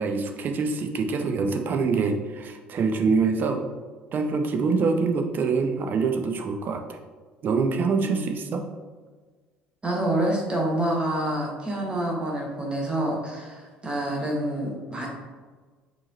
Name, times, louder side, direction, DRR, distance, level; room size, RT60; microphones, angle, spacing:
voice 1, 0.0-3.7 4.1-7.0 7.4-8.6, right 4 dB, 40° right, 5 dB, 0.5 m, -25 dB
voice 2, 8.0-8.5 9.8-15.1, right 1 dB, 20° right, -2 dB, 1.2 m, -27 dB
4.5 x 2.8 x 3.0 m, 1.4 s
figure-of-eight pair, 55°, 5 cm